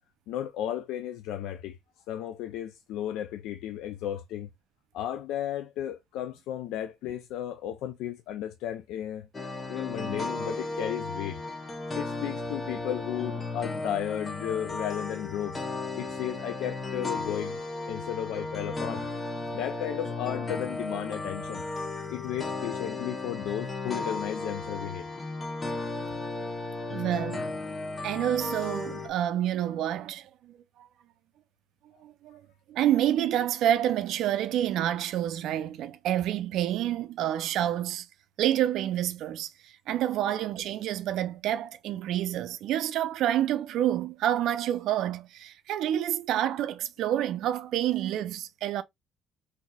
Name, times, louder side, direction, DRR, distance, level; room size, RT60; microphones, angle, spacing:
voice 1, 0.3-1.8 2.1-4.5 4.9-9.3 9.7-11.4 12.0-15.6 16.0-17.6 17.9-19.1 19.5-21.6 22.1-25.1, left 11 dB, 85° left, 0.3 m, -34 dB
sound 1, 9.3-29.1, left 3 dB, 20° left, 0.7 m, -35 dB
voice 2, 26.9-27.4 28.0-30.9 32.0-32.4 32.7-38.1 38.4-48.8, right 11 dB, 75° right, 0.4 m, -28 dB
4.0 x 2.7 x 2.2 m
cardioid pair, 110°, 0 cm